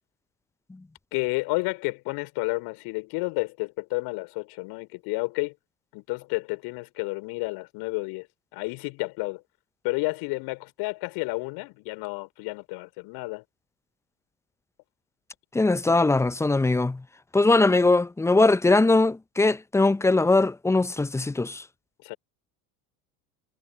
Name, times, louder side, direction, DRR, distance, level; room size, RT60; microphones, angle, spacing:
voice 1, 1.1-5.5 5.9-8.3 8.5-9.4 9.8-13.4 22.0-22.2, left 25 dB, 55° left, 4.2 m, -31 dB
voice 2, 15.5-17.0 17.3-21.6, left 2 dB, 5° left, 0.7 m, -21 dB
figure-of-eight pair, 75°, 46 cm